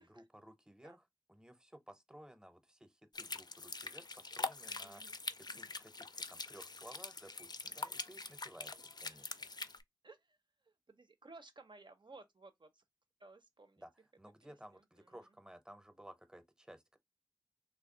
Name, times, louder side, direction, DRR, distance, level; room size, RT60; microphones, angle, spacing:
voice 1, 0.0-5.0 5.4-9.5 13.8-17.0, right 1 dB, 10° right, 0.6 m, -57 dB
sound 1, 3.1-9.8, left 3 dB, 60° left, 0.4 m, -44 dB
voice 2, 4.8-5.2 7.6-7.8 9.1-9.2 10.0-10.4 10.7-12.8 13.2-13.8 14.4-15.2, right 3 dB, 80° right, 0.6 m, -58 dB
3.2 x 2.2 x 3.7 m
wide cardioid pair, 40°, 8 cm